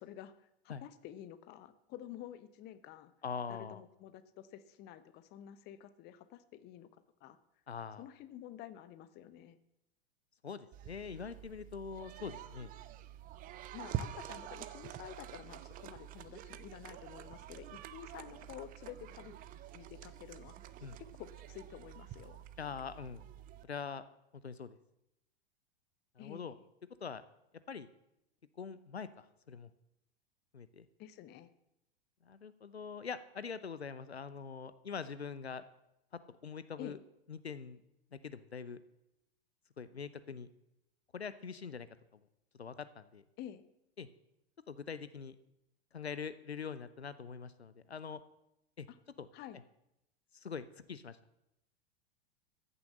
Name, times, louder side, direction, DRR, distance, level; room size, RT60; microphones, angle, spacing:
voice 1, 0.0-3.1 3.5-6.9 7.2-7.4 8.0-9.6 13.7-19.4 19.7-20.6 21.2-22.4 26.2-26.6 31.0-31.5 36.8-37.0 43.4-43.6 48.9-49.0 49.3-49.6, left 11 dB, 30° left, 13 dB, 0.9 m, -50 dB
voice 2, 3.2-3.8 7.7-8.0 10.4-12.7 20.8-21.0 22.6-23.2 23.6-24.0 24.4-24.8 26.2-26.6 27.0-27.2 27.7-27.9 28.6-29.7 30.5-30.9 32.2-35.6 36.3-37.0 37.3-37.8 38.1-38.8 39.8-40.5 41.1-41.9 42.1-42.2 42.6-43.2 44.0-44.1 44.7-45.4 45.9-48.2 48.8-48.9 49.2-49.3 50.3-51.4, left 6 dB, 80° left, 14 dB, 0.8 m, -43 dB
sound 1, 10.7-23.6, right 11 dB, 25° right, 0.7 m, -47 dB
14.5 x 6.9 x 7.6 m, 0.83 s
figure-of-eight pair, 95°, 31 cm